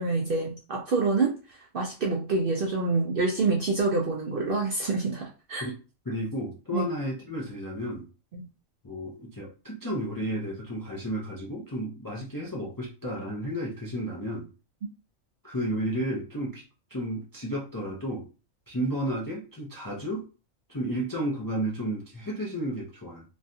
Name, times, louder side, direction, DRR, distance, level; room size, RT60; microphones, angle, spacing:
voice 1, 0.0-1.4 1.7-5.7 6.7-6.8 8.3-8.5, right 3 dB, 60° right, 0 dB, 0.6 m, -27 dB
voice 2, 6.1-8.1 8.8-14.5 15.4-16.6 16.9-18.3 18.7-20.3 20.7-23.2, equal, 30° left, -3 dB, 0.4 m, -32 dB
3.1 x 2.2 x 2.6 m, 0.33 s
omnidirectional pair, 1.4 m